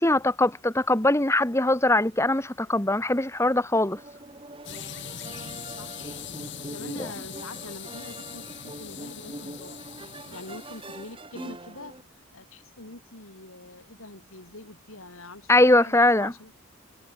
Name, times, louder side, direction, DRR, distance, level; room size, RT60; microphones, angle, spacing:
voice 1, 0.0-4.0 7.0-7.1 15.5-16.3, left 2 dB, 15° left, 1.4 m, -21 dB
sound 1, 3.7-12.0, right 1 dB, 25° right, 4.2 m, -43 dB
sound 2, 4.6-11.1, left 9 dB, 55° left, 2.4 m, -41 dB
voice 2, 6.7-9.8 10.3-11.9 12.3-16.5, left 2 dB, 75° left, 5.9 m, -44 dB
head